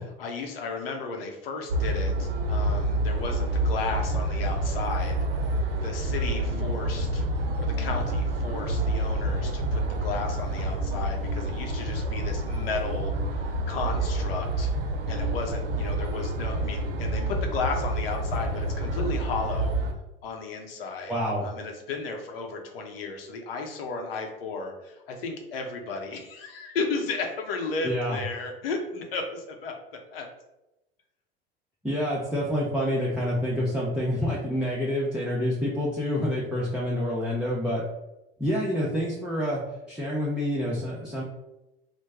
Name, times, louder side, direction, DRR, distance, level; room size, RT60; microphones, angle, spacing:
voice 1, 0.2-7.2 7.6-14.7 15.1-19.8 20.2-21.2 21.4-29.7 30.1-30.3, left 4 dB, 75° left, 3 dB, 0.8 m, -34 dB
sound 1, 1.7-19.9, right 1 dB, 65° right, 0.6 m, -28 dB
voice 2, 21.1-21.5 27.8-28.2 31.8-37.8 38.4-39.6 39.9-41.2, left 1 dB, 5° right, -7 dB, 0.7 m, -27 dB
3.1 x 2.2 x 3.5 m, 0.96 s
hypercardioid pair, 80°, 29 cm